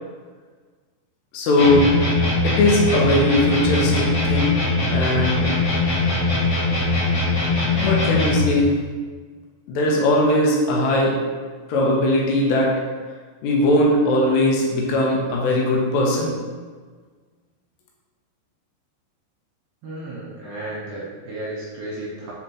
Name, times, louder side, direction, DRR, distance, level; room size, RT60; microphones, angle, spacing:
voice 1, 1.3-1.9 2.4-4.6 4.9-5.5 7.7-8.7 9.7-11.2 11.7-12.8 13.4-16.4, left 1 dB, 75° left, -2 dB, 2.8 m, -19 dB
sound 1, 1.6-8.6, left 3 dB, 55° left, 1.7 m, -21 dB
voice 2, 19.8-22.3, right 1 dB, 70° right, -6 dB, 2.7 m, -33 dB
7.5 x 4.4 x 2.9 m, 1.5 s
omnidirectional pair, 5.5 m